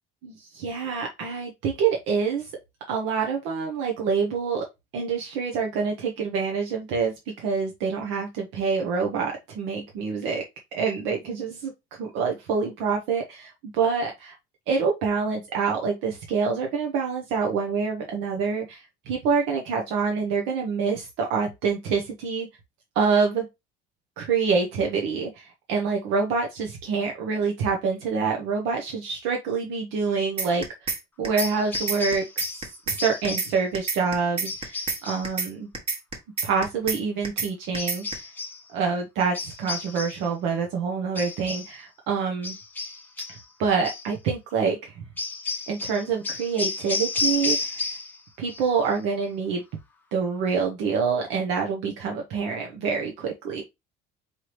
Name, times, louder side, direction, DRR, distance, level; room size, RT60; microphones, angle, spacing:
voice 1, 0.2-2.5 2.9-4.6 4.9-10.4 10.7-11.7 12.0-14.3 14.7-22.5 22.9-23.4 24.2-30.9 31.2-32.6 32.9-35.7 36.4-38.3 38.7-42.5 43.3-45.1 45.7-47.8 48.4-49.6 50.1-53.6, right 5 dB, 85° right, 1.1 m, -26 dB
sound 1, 30.4-31.0 31.2-31.5 31.7-33.0 33.2-33.5 33.7-35.0 35.2-35.5 35.7-37.0 37.2-37.5 37.7-38.1, right 4 dB, 30° right, 1.2 m, -28 dB
sound 2, 31.4-32.7 33.0-33.6 34.4-35.3 37.7-38.6 39.3-40.3 41.1-41.8 42.4-43.4 43.8-44.1 45.2-48.2 48.5-49.0, left 3 dB, 10° left, 0.7 m, -32 dB
4.7 x 3.4 x 3.0 m
cardioid pair, 175°, 19 cm